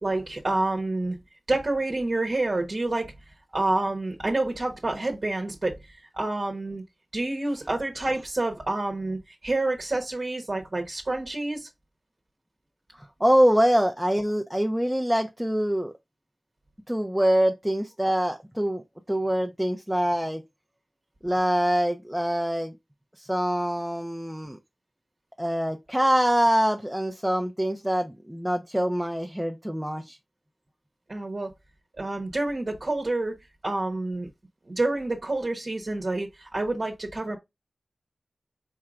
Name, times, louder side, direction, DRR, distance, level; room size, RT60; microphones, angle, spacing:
voice 1, 0.0-1.2 1.5-3.2 3.5-6.8 7.1-11.7 31.1-31.5 32.0-33.4 33.6-34.3 34.7-37.4, right 2 dB, 45° right, 1.2 m, -28 dB
voice 2, 13.0-15.9 16.9-18.8 19.1-20.4 21.2-22.7 23.2-24.6 25.4-30.2, equal, 5° right, 0.7 m, -24 dB
4.6 x 4.5 x 2.4 m
wide cardioid pair, 60°, 0 cm